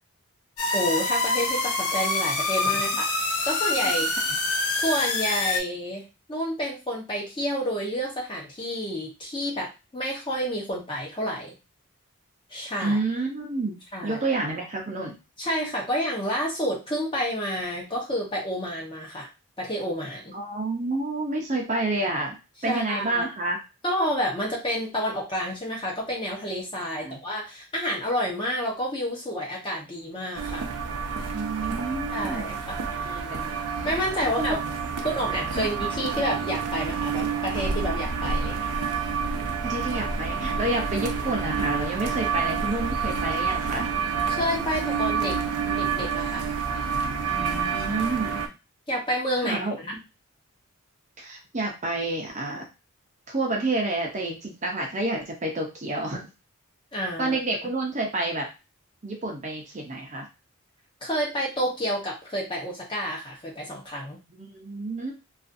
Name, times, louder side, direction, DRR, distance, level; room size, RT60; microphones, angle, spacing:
sound 1, 0.6-5.6, left 2 dB, 85° left, 0.7 m, -26 dB
voice 1, 0.7-3.1 3.4-4.1 4.7-11.6 12.5-13.0 13.9-14.2 15.4-19.3 19.6-20.4 22.7-23.3 23.8-30.7 32.1-33.2 33.8-34.6 35.0-38.7 44.3-45.4 45.6-46.4 47.8-48.5 48.9-50.0 56.9-57.4 61.0-64.2, equal, 20° left, -2 dB, 0.7 m, -29 dB
voice 2, 12.8-15.2 20.3-22.4 22.6-23.6 26.9-27.2 31.3-32.5 33.0-33.5 34.2-34.6 35.5-35.7 39.6-43.9 47.3-48.4 49.4-49.8 51.2-52.7 53.3-56.3 57.2-58.5 59.0-60.3 64.3-65.1, right 2 dB, 30° right, 1 dB, 0.5 m, -29 dB
sound 2, 30.4-48.5, right 5 dB, 80° right, 0.5 m, -28 dB
2.5 x 2.4 x 2.5 m, 0.28 s
head